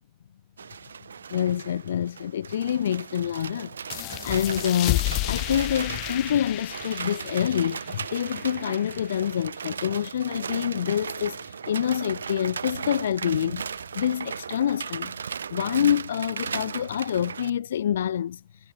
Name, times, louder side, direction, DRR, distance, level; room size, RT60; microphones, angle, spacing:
sound 1, 0.6-17.5, right 6 dB, 70° right, 5.3 m, -36 dB
voice 1, 1.3-15.1 15.5-18.4, left 9 dB, 65° left, 1.0 m, -27 dB
sound 2, 3.9-9.1, left 25 dB, 40° left, 1.7 m, -32 dB
figure-of-eight pair, 90°, 0 cm